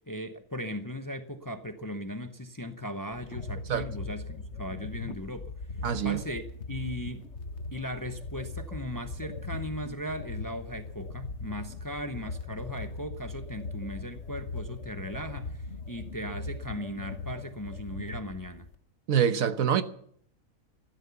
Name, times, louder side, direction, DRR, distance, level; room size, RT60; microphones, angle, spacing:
voice 1, 0.1-5.5 6.0-6.4 6.7-7.3 7.7-18.7, equal, 20° left, 0.7 m, -38 dB
sound 1, 3.1-18.8, left 3 dB, 55° left, 1.3 m, -39 dB
voice 2, 5.8-6.2 19.1-19.8, right 8 dB, 75° right, 1.4 m, -25 dB
14.5 x 12.0 x 6.9 m
omnidirectional pair, 1.4 m